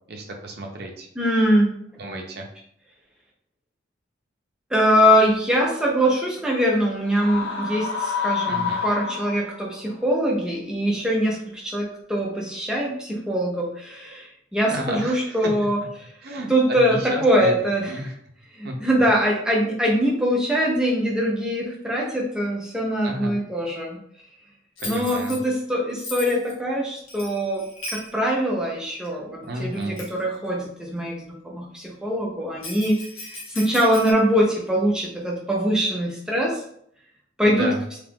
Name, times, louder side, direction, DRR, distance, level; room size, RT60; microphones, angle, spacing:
voice 1, 0.1-1.1 2.0-2.5 8.4-8.8 14.6-15.5 16.2-17.5 17.8-18.1 18.6-19.1 23.0-23.4 24.8-25.4 29.4-30.0 37.4-37.8, right 1 dB, 50° right, 2 dB, 0.6 m, -32 dB
voice 2, 1.2-1.7 4.7-16.1 16.5-18.1 18.5-24.0 24.8-36.6 37.4-37.7, equal, 5° right, -3 dB, 0.6 m, -23 dB
sound 1, 7.1-9.7, left 6 dB, 30° left, 1.0 m, -28 dB
Bell, 24.8-25.4 26.0-26.5 27.1-28.1 29.0-29.1 29.7-30.2 32.6-34.1, left 2 dB, 80° left, 0.9 m, -37 dB
2.9 x 2.4 x 3.5 m, 0.68 s
head